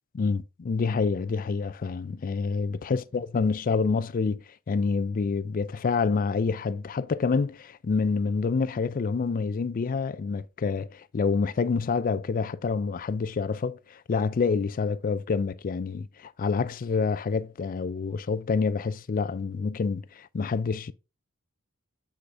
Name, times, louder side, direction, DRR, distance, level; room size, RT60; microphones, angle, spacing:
voice 1, 0.1-20.9, left 4 dB, 40° left, 0.4 m, -27 dB
8.3 x 4.9 x 2.6 m
head